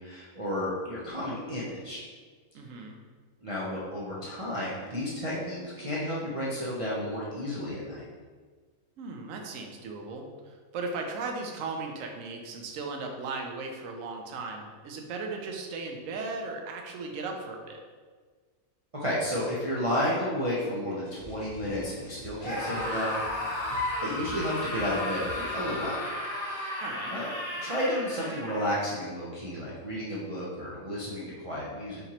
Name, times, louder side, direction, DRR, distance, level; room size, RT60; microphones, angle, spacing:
voice 1, 0.0-2.0 3.4-8.0 18.9-23.2 24.0-26.0 26.4-26.8 27.1-27.3 27.6-32.0, equal, 50° right, -8 dB, 0.4 m, -32 dB
voice 2, 2.5-3.0 9.0-17.8 26.8-27.1, right 3 dB, 70° right, 2 dB, 1.0 m, -37 dB
sound 1, 21.0-26.4, left 2 dB, 65° left, 1.0 m, -47 dB
Screaming, 22.4-28.9, left 1 dB, 30° left, 0.8 m, -34 dB
5.1 x 2.9 x 2.8 m, 1.5 s
omnidirectional pair, 1.5 m